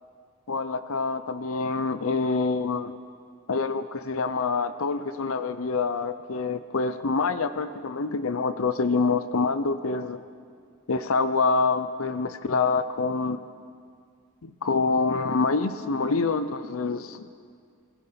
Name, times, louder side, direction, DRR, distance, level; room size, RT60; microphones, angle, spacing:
voice 1, 0.5-2.9 3.5-10.2 10.9-13.4 14.4-17.3, left 4 dB, 80° left, 11 dB, 0.7 m, -26 dB
27.5 x 16.0 x 5.8 m, 2.2 s
head